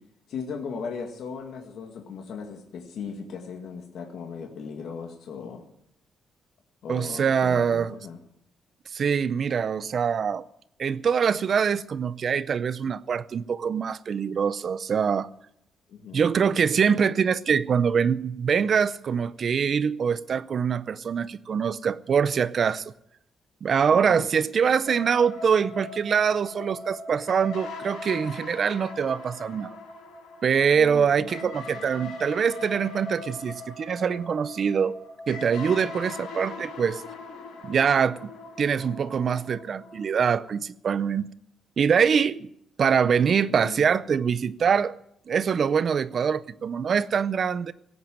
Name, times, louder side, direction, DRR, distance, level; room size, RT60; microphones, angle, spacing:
voice 1, 0.3-5.6 6.8-8.2 15.9-16.3 24.1-24.3 30.7-31.5 43.5-43.8, left 5 dB, 60° left, 2.1 m, -37 dB
voice 2, 6.9-8.0 8.9-10.4 10.8-15.3 16.1-22.8 23.6-29.8 30.4-35.0 35.3-37.0 37.6-38.3 38.6-41.3 41.8-42.5 42.8-45.0 45.3-47.7, right 7 dB, 40° right, 0.6 m, -24 dB
sound 1, 24.8-40.4, left 2 dB, 80° left, 5.1 m, -40 dB
17.5 x 8.8 x 9.1 m
cardioid pair, 165°, 0 cm